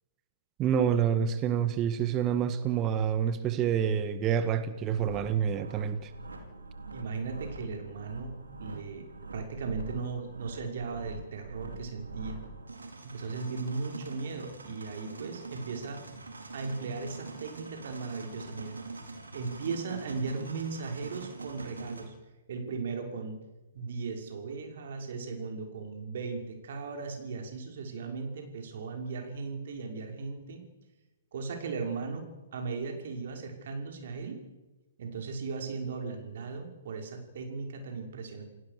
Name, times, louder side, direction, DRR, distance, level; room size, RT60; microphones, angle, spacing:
voice 1, 0.6-6.1, right 8 dB, 25° right, 12 dB, 1.7 m, -27 dB
sound 1, 4.9-22.0, right 3 dB, 80° right, 5.1 m, -44 dB
voice 2, 6.9-9.1 9.3-12.4 13.0-16.0 16.5-18.8 19.3-22.1 22.5-23.4 23.7-30.6 31.3-32.3 32.5-34.4 35.0-38.4, right 4 dB, 55° right, 3 dB, 6.0 m, -37 dB
29.5 x 18.0 x 7.0 m, 1.1 s
figure-of-eight pair, 125°, 0 cm